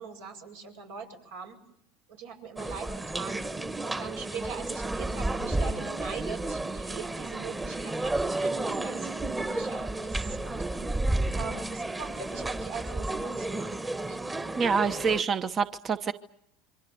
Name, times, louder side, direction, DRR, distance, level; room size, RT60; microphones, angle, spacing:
voice 1, 0.0-1.6 2.1-3.4 3.8-10.6 10.9-11.0 11.3-14.2, right 6 dB, 85° right, 2 dB, 7.1 m, -42 dB
sound 1, 2.6-15.2, right 2 dB, 15° right, 1.3 m, -32 dB
voice 2, 14.6-16.1, right 5 dB, 35° right, 10 dB, 0.9 m, -26 dB
27.5 x 24.0 x 6.9 m, 0.71 s
hypercardioid pair, 95°, 0 cm